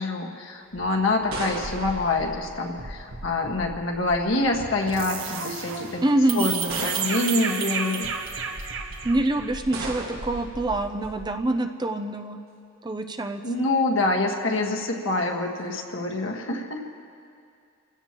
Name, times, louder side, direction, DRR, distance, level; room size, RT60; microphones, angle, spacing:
voice 1, 0.0-6.0 6.3-8.1 13.4-16.8, left 2 dB, 65° left, 1 dB, 1.6 m, -26 dB
sound 1, 0.7-3.0 4.1-4.5 5.4-5.5 6.7-7.5 9.7-10.5, right 2 dB, 90° right, 2.8 m, -36 dB
sound 2, 1.4-11.4, right 5 dB, 70° right, 1.3 m, -33 dB
voice 2, 6.0-6.5 9.0-12.4 12.8-13.4, right 1 dB, 20° right, 6 dB, 0.5 m, -25 dB
29.5 x 16.5 x 3.0 m, 2.4 s
head